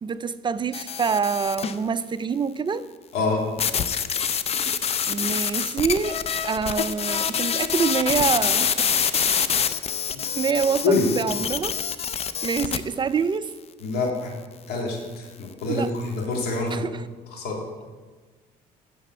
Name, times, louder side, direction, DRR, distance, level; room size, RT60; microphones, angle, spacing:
voice 1, 0.0-2.9 5.1-9.5 10.3-11.8 12.4-13.5 15.7-15.9 16.7-17.0, right 6 dB, 30° right, 0.5 m, -26 dB
sound 1, 0.7-1.8 3.6-12.8, left 7 dB, 35° left, 0.6 m, -25 dB
voice 2, 13.8-14.3 14.7-16.8 17.3-17.6, left 3 dB, 75° left, 3.1 m, -26 dB
9.0 x 6.9 x 8.0 m
cardioid pair, 110°, 17 cm